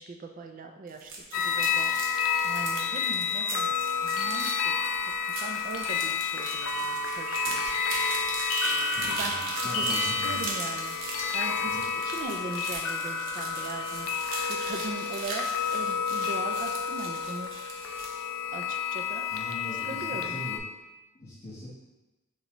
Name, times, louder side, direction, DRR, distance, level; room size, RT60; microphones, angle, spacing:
voice 1, 0.0-2.2 2.4-4.8 5.2-7.6 9.0-17.6 18.5-19.3 19.8-20.4, right 3 dB, 40° right, 4 dB, 0.3 m, -40 dB
sound 1, 0.9-18.3, right 3 dB, 60° right, 0.8 m, -39 dB
sound 2, 1.3-20.6, left 5 dB, 75° left, 0.5 m, -30 dB
voice 2, 8.7-10.4 11.6-11.8 19.3-20.6 21.1-21.7, left 1 dB, 35° left, -11 dB, 1.1 m, -41 dB
6.4 x 2.3 x 3.0 m, 1.1 s
head